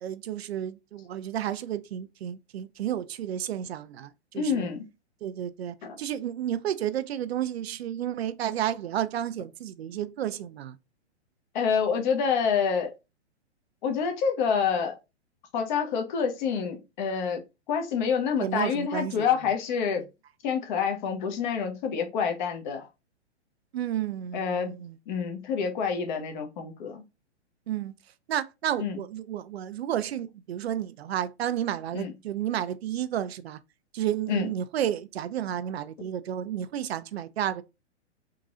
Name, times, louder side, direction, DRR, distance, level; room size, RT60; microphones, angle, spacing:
voice 1, 0.0-4.7 5.2-10.8 18.4-19.3 23.7-25.0 27.7-27.9 28.3-33.6 33.9-37.6, right 10 dB, 65° right, 0.5 m, -31 dB
voice 2, 4.3-4.9 5.8-6.0 11.5-12.9 13.8-14.9 15.5-17.4 17.7-20.0 20.4-22.9 24.3-24.8 25.1-27.0 28.8-29.0 31.9-32.1 34.3-34.5, left 6 dB, 40° left, 1.0 m, -27 dB
3.7 x 3.0 x 2.4 m
hypercardioid pair, 130°, 35 cm